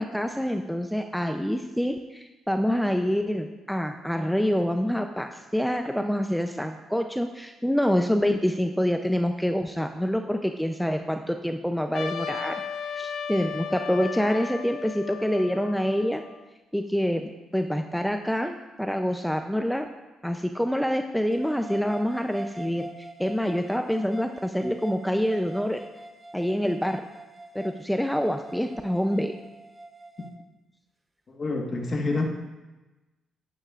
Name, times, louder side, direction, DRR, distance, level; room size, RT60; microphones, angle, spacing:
voice 1, 0.0-12.6 12.9-16.2 16.7-19.9 20.2-22.9 23.2-25.8 26.3-27.1 27.5-29.3, equal, ahead, 6 dB, 0.5 m, -26 dB
Trumpet, 11.9-16.4, left 6 dB, 65° left, 0.9 m, -35 dB
sound 1, 21.3-30.4, right 2 dB, 20° right, 1.0 m, -44 dB
voice 2, 31.3-32.3, left 2 dB, 40° left, 0 dB, 1.4 m, -27 dB
11.0 x 9.9 x 2.5 m, 1.1 s
cardioid pair, 90°, 0 cm